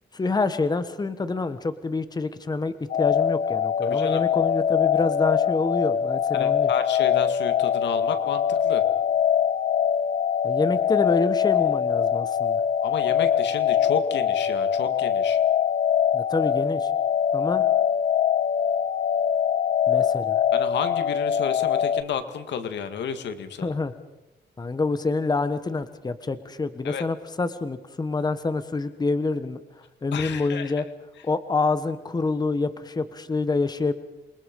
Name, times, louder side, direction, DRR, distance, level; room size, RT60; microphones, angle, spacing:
voice 1, 0.1-6.7 10.4-12.6 16.1-16.9 17.3-17.6 19.9-20.4 23.6-23.9 24.6-29.6 30.0-30.8 31.2-33.9, left 3 dB, 20° left, 12 dB, 1.2 m, -27 dB
sound 1, 2.9-22.0, left 8 dB, 50° left, 0.7 m, -23 dB
voice 2, 3.8-4.2 6.3-8.8 12.8-15.4 20.5-23.8 26.8-27.0 30.1-30.7, left 7 dB, 90° left, 9 dB, 2.0 m, -31 dB
28.0 x 22.5 x 5.3 m, 0.96 s
cardioid pair, 120°, 18 cm